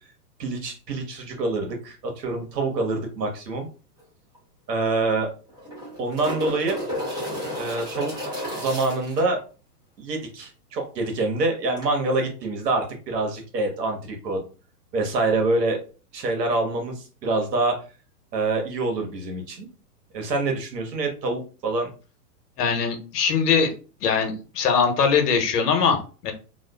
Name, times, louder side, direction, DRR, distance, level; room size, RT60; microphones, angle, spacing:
voice 1, 0.4-3.7 4.7-5.3 6.0-6.8 7.6-8.1 8.6-9.4 10.0-14.4 14.9-15.8 16.1-17.8 18.3-19.7 20.1-21.9, right 3 dB, 90° right, 3 dB, 1.1 m, -26 dB
sound 1, 4.0-4.1 4.3-4.4 5.5-9.2 11.8-11.9, equal, 10° right, 0.6 m, -32 dB
voice 2, 22.6-23.7 24.0-26.3, left 6 dB, 75° left, 5 dB, 0.9 m, -21 dB
2.4 x 2.3 x 2.2 m, 0.35 s
hypercardioid pair, 135°, 47 cm